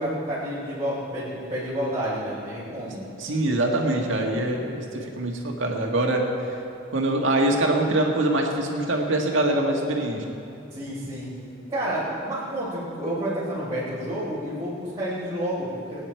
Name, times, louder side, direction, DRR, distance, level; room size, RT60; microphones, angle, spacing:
voice 1, 0.0-3.0 10.7-11.3 11.7-16.0, right 1 dB, 20° right, -12 dB, 4.0 m, -29 dB
voice 2, 3.2-6.3 6.9-10.2, right 1 dB, 75° right, 1 dB, 1.9 m, -24 dB
23.0 x 9.4 x 4.6 m, 2.6 s
head